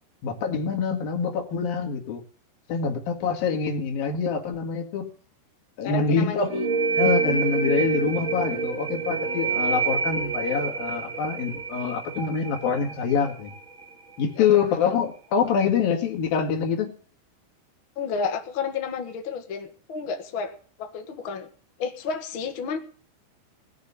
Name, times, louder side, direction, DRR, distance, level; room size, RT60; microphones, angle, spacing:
voice 1, 0.2-2.2 2.7-5.1 5.8-6.5 7.0-13.5 14.2-16.9, left 6 dB, 55° left, 2 dB, 3.4 m, -25 dB
voice 2, 5.8-6.7 14.4-14.9 17.9-20.5 20.8-21.5 21.8-22.8, left 5 dB, 75° left, 5 dB, 1.1 m, -31 dB
sound 1, 6.5-13.9, right 5 dB, 20° right, 2.7 m, -27 dB
19.0 x 6.7 x 8.3 m, 0.43 s
omnidirectional pair, 5.5 m